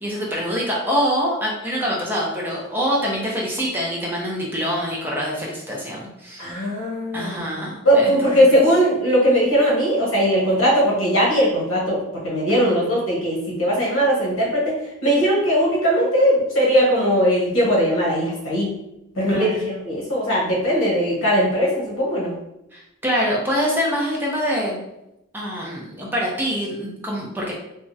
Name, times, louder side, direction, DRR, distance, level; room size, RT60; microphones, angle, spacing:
voice 1, 0.0-6.5 7.1-8.5 12.5-12.8 19.3-19.6 22.7-24.8 25.3-27.5, equal, 10° right, -4 dB, 0.5 m, -25 dB
voice 2, 6.4-7.4 7.8-14.7 15.0-18.7 19.1-22.3, equal, 70° left, -4 dB, 1.1 m, -19 dB
3.5 x 2.1 x 2.6 m, 0.88 s
head